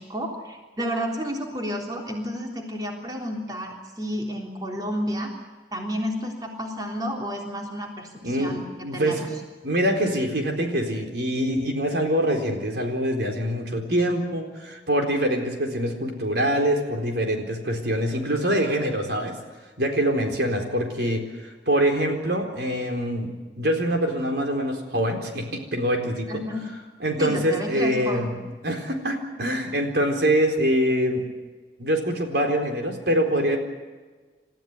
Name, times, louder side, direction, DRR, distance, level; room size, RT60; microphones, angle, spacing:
voice 1, 0.0-5.3 5.7-9.3 26.3-26.6 27.2-28.3, equal, 20° right, 1 dB, 3.6 m, -31 dB
voice 2, 8.2-9.2 9.6-19.3 19.8-21.2 21.7-23.3 23.6-26.4 27.0-28.3 28.6-31.2 31.8-33.6, equal, 65° right, 3 dB, 4.2 m, -24 dB
29.0 x 15.0 x 9.7 m, 1.3 s
head